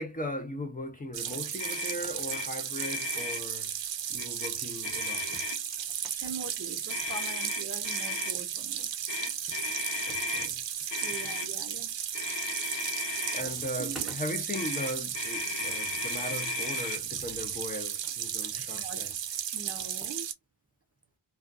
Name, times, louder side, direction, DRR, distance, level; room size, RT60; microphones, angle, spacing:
voice 1, 0.0-3.8 4.1-5.6 10.1-10.6 13.3-19.1, left 1 dB, 20° left, 0.6 m, -38 dB
sound 1, 1.1-1.5 1.8-2.3 2.9-4.3 5.1-7.4 8.5-8.6 8.8-8.9 9.5-10.3 10.8-11.3 11.9-12.3 12.6-13.0 13.3-14.2 15.2-18.2 19.1-20.2, right 1 dB, ahead, 0.9 m, -53 dB
sound 2, 1.1-20.3, right 9 dB, 75° right, 0.6 m, -35 dB
Motor vehicle (road), 1.6-2.0 2.3-2.5 2.7-3.4 4.2-4.5 4.8-5.7 6.9-8.3 9.1-10.5 10.9-11.5 12.1-13.4 14.5-17.0, left 5 dB, 75° left, 1.0 m, -35 dB
voice 2, 6.1-8.9 11.0-11.9 13.8-14.1 18.5-19.0 19.5-20.3, right 4 dB, 35° right, 0.5 m, -42 dB
2.5 x 2.3 x 2.4 m
wide cardioid pair, 110°, 44 cm